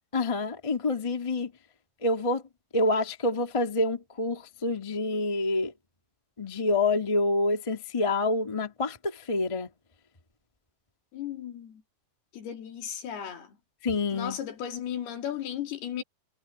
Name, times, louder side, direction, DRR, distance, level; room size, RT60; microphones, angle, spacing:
voice 1, 0.1-1.5 2.0-2.4 2.7-5.7 6.4-9.7 13.8-14.4, left 2 dB, 20° left, 0.9 m, -27 dB
voice 2, 11.1-11.8 12.3-13.6 14.1-16.0, left 9 dB, 75° left, 4.6 m, -35 dB
omnidirectional pair, 4.6 m